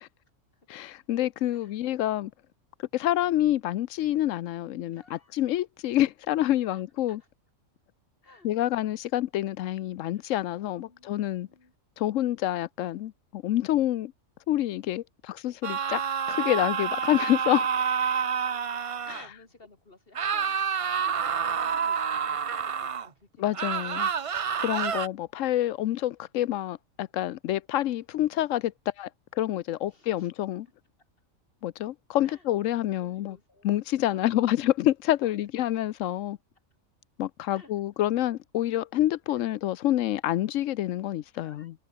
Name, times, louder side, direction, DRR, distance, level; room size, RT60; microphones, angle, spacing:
voice 1, 0.7-2.3 2.9-7.2 8.4-11.5 12.0-14.1 14.5-16.0 16.3-17.7 19.1-19.2 23.4-24.1 24.6-28.7 29.0-29.1 29.4-30.7 31.6-33.4 33.6-36.4 37.2-41.7, left 13 dB, 85° left, 1.0 m, -27 dB
voice 2, 4.9-5.3 6.7-7.3 8.2-8.5 10.1-10.3 10.8-11.7 18.5-20.6 20.9-24.6 29.9-30.3 31.0-31.1 32.2-32.5 33.0-33.7 34.1-34.6 35.2-35.5 37.5-37.7 39.3-39.5 41.3-41.7, left 2 dB, 45° left, 3.1 m, -57 dB
sound 1, 15.6-19.3 20.1-23.1 23.5-25.1, right 7 dB, 50° right, 0.4 m, -28 dB
omnidirectional pair, 1.3 m